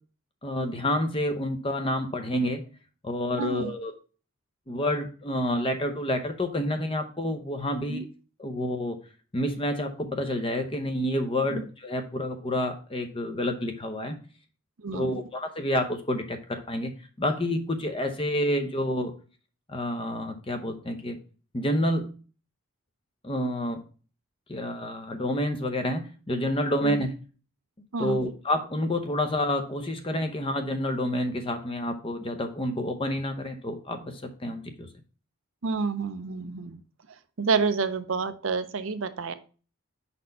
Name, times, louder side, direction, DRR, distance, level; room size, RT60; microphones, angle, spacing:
voice 1, 0.4-2.6 3.0-3.9 4.7-8.1 8.4-9.0 9.3-14.2 14.9-16.9 17.2-19.1 19.7-21.2 21.5-22.1 23.2-23.8 24.5-27.1 28.0-34.9, left 1 dB, 25° left, 7 dB, 0.7 m, -29 dB
voice 2, 3.4-3.7 7.9-8.0 11.5-11.6 14.8-15.1 26.8-27.0 27.9-28.2 35.6-36.8 37.4-39.3, right 4 dB, 65° right, 11 dB, 0.5 m, -29 dB
5.2 x 4.2 x 5.4 m, 0.38 s
head